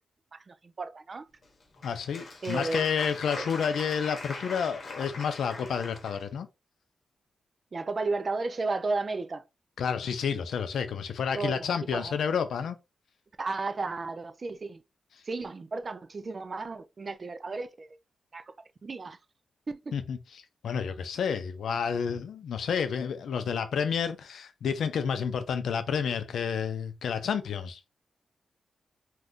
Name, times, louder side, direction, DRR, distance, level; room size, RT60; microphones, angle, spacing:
voice 1, 0.3-1.2 2.4-2.9 3.4-3.5 7.7-9.4 11.3-12.1 13.4-14.8 15.2-17.9 18.3-18.4 18.8-19.2 19.7-19.9, right 3 dB, 35° right, 0.3 m, -33 dB
Applause, 1.4-6.3, left 3 dB, 55° left, 0.9 m, -41 dB
voice 2, 1.8-6.5 9.8-12.8 19.9-20.2 20.6-27.8, left 7 dB, 85° left, 0.5 m, -30 dB
2.6 x 2.4 x 3.5 m
wide cardioid pair, 120°, 0 cm